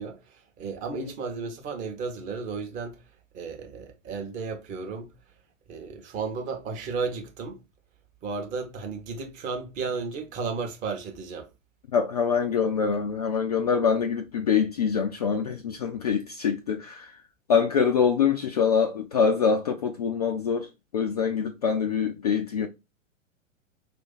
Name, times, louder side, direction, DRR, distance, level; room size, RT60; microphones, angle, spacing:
voice 1, 0.0-3.0 3.3-5.1 5.7-7.6 8.2-11.5, right 4 dB, 20° right, 0.8 m, -34 dB
voice 2, 11.9-17.1 17.5-20.7 20.9-22.7, left 6 dB, 30° left, 0.4 m, -24 dB
4.9 x 2.5 x 3.8 m
figure-of-eight pair, 105°, 39 cm